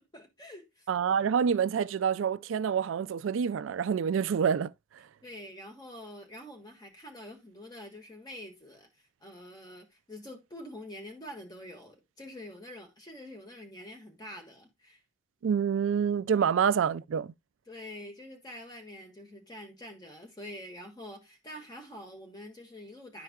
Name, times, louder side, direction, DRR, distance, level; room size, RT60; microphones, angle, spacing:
voice 1, 0.1-0.8 5.2-15.0 16.4-16.5 17.7-23.2, left 1 dB, 20° left, 1.6 m, -46 dB
voice 2, 0.9-4.7 15.4-17.3, right 7 dB, 80° right, 0.3 m, -27 dB
11.5 x 4.7 x 2.2 m
head